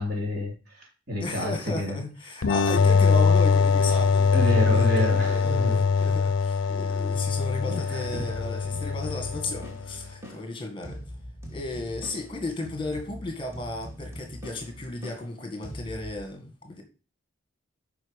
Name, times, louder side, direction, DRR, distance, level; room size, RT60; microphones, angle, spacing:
voice 1, 0.0-2.0 4.3-5.8 7.6-8.3, equal, 45° right, 3.5 m, -29 dB
voice 2, 1.2-11.0 11.5-16.8, left 2 dB, 25° left, 1.8 m, -34 dB
sound 1, 2.4-9.9, left 5 dB, 60° left, 0.6 m, -22 dB
sound 2, 8.0-16.3, equal, 10° right, 2.2 m, -42 dB
9.1 x 5.5 x 5.2 m
head